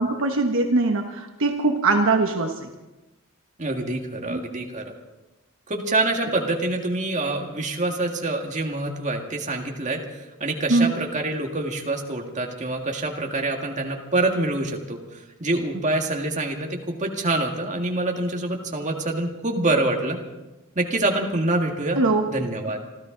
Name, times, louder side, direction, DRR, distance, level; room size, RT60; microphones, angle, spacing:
voice 1, 0.0-2.7 10.7-10.9 22.0-22.2, right 3 dB, 60° right, 4 dB, 1.2 m, -21 dB
voice 2, 3.6-4.9 5.7-15.0 15.4-20.2 20.8-22.0 22.3-22.8, right 2 dB, 35° right, 2 dB, 1.9 m, -26 dB
27.0 x 13.0 x 3.9 m, 1.0 s
head